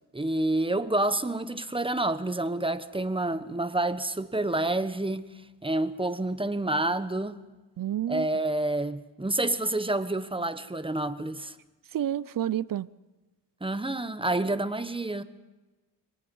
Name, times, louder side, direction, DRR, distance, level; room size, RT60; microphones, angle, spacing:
voice 1, 0.1-5.2 5.6-7.4 8.1-11.5 13.6-15.2, right 2 dB, 15° right, 1.1 m, -28 dB
voice 2, 7.8-8.3 11.9-12.9, right 11 dB, 55° right, 0.6 m, -29 dB
27.0 x 19.5 x 5.5 m
cardioid pair, 80°, 41 cm